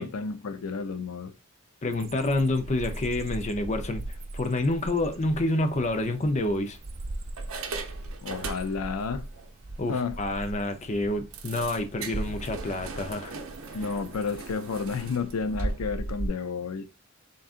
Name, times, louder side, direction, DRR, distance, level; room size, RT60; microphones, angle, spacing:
voice 1, 0.0-1.3 8.2-9.3 9.9-10.2 13.7-16.9, left 5 dB, 85° left, 0.5 m, -31 dB
voice 2, 1.8-4.0 4.3-6.8 9.8-13.4, left 2 dB, 35° left, 0.6 m, -28 dB
sound 1, 1.9-14.5, right 2 dB, 30° right, 0.4 m, -41 dB
sound 2, 5.3-5.5 6.2-6.9 7.4-9.0 9.3-9.5 9.9-10.0 10.3-10.4 11.3-16.3, right 3 dB, 70° right, 0.7 m, -37 dB
3.9 x 3.6 x 2.4 m
head